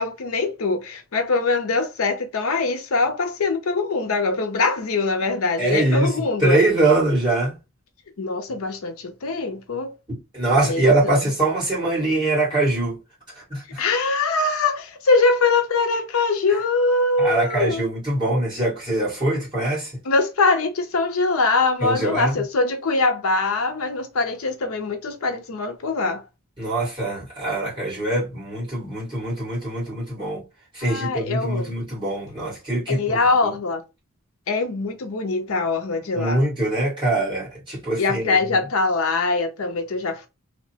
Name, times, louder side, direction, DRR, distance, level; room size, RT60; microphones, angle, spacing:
voice 1, 0.0-6.6 8.2-9.9 10.6-11.2 13.8-17.8 20.0-26.2 30.8-31.7 32.9-33.8 34.5-36.4 38.0-40.3, left 3 dB, 85° left, 0.6 m, -23 dB
voice 2, 5.6-7.5 10.1-13.0 13.5-13.8 17.2-19.9 21.8-22.4 26.6-30.4 30.7-33.5 36.1-38.6, right 2 dB, 20° right, 1.6 m, -23 dB
2.8 x 2.1 x 2.8 m
head